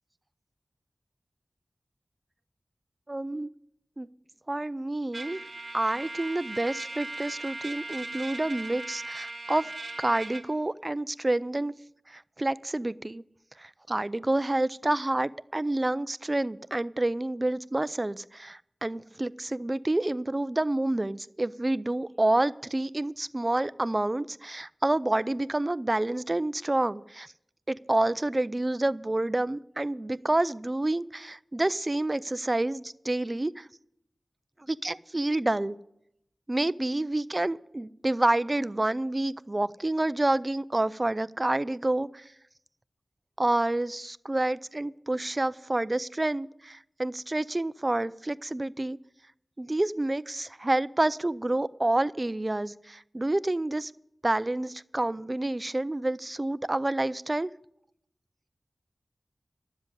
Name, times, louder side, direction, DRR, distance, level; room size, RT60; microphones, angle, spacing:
voice 1, 3.1-3.5 4.0-4.1 4.5-5.4 5.7-9.7 10.0-11.7 12.1-13.2 13.6-27.3 27.7-33.7 34.7-35.8 36.5-42.2 43.4-49.0 49.6-53.9 54.2-57.5, right 2 dB, 30° right, 17 dB, 0.4 m, -28 dB
Trumpet, 5.1-10.5, right 2 dB, 50° right, 2.3 m, -38 dB
11.5 x 7.5 x 9.6 m, 0.79 s
wide cardioid pair, 55°, 0 cm